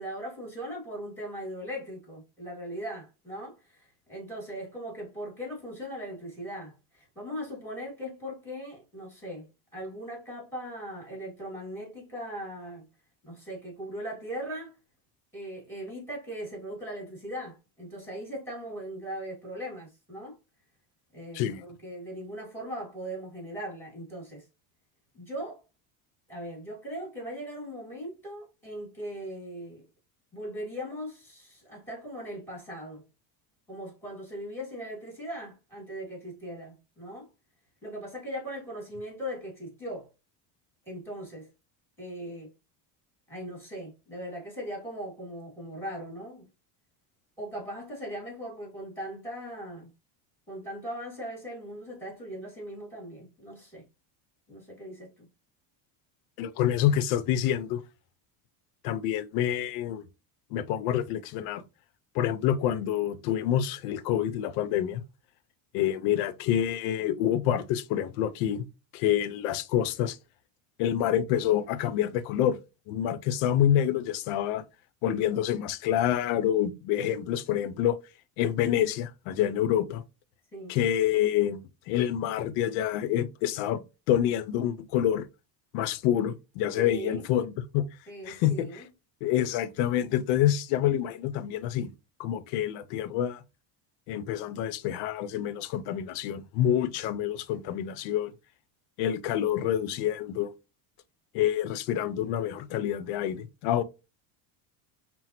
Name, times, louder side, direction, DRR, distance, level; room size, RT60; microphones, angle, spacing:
voice 1, 0.0-12.9 13.2-14.7 15.3-20.4 21.1-24.4 25.1-25.6 26.3-29.8 30.3-33.0 33.7-37.3 37.8-40.1 40.9-41.5 42.0-42.5 43.3-46.5 47.4-49.9 50.5-53.8 54.5-55.3 80.5-80.8 86.8-87.3 88.1-88.8, equal, 5° left, 2.2 m, -39 dB
voice 2, 21.3-21.6 56.4-57.8 58.8-60.1 60.5-61.6 62.1-65.0 65.7-68.7 68.9-70.2 70.8-72.6 72.9-74.6 75.0-78.0 78.4-80.0 80.7-81.6 81.9-83.8 84.1-85.3 85.7-87.9 88.3-88.8 89.2-91.9 92.2-93.4 94.1-98.3 99.0-100.5 101.3-103.8, left 11 dB, 75° left, 0.6 m, -27 dB
5.7 x 2.0 x 2.8 m
cardioid pair, 130°, 45 cm